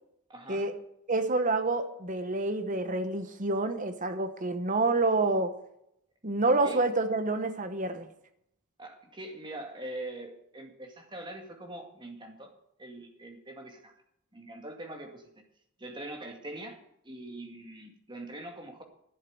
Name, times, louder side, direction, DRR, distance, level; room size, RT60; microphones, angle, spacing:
voice 1, 0.3-0.7 6.6-6.8 8.8-12.5 12.8-13.9 14.3-15.4 15.8-18.8, right 1 dB, 20° right, 4 dB, 2.1 m, -43 dB
voice 2, 1.1-5.5 6.2-8.1, right 2 dB, 35° right, 9 dB, 1.0 m, -28 dB
12.0 x 7.4 x 9.4 m, 0.75 s
head